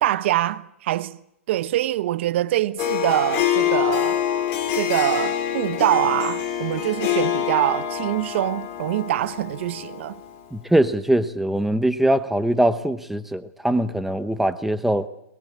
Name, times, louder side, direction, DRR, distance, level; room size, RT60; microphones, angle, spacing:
voice 1, 0.0-1.2 1.5-4.2 4.8-10.2, right 13 dB, 55° right, 1.1 m, -24 dB
Harp, 2.8-10.3, left 10 dB, 35° left, 4.2 m, -25 dB
voice 2, 10.5-15.1, right 1 dB, 5° right, 1.0 m, -22 dB
22.5 x 20.5 x 8.6 m
hypercardioid pair, 140°, 8 cm